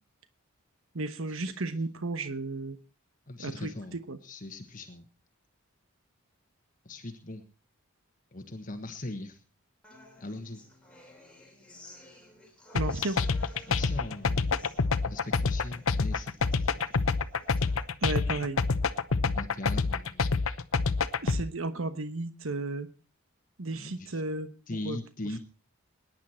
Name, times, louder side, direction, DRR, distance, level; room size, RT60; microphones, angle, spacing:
voice 1, 0.9-2.8 3.4-4.2 12.7-13.2 18.0-18.6 21.2-22.9 23.6-24.5 24.8-25.0, right 2 dB, 65° right, 10 dB, 1.1 m, -33 dB
voice 2, 3.3-5.1 6.8-7.4 8.3-9.4 10.2-10.6 13.7-14.7 15.0-16.5 19.2-20.3 23.7-24.2 24.7-25.4, left 2 dB, 35° left, 6 dB, 1.3 m, -40 dB
Human voice / Acoustic guitar, 9.8-17.8, left 1 dB, 5° left, 3.4 m, -53 dB
sound 1, 12.8-21.4, left 4 dB, 65° left, 0.8 m, -27 dB
20.5 x 10.5 x 4.4 m, 0.35 s
head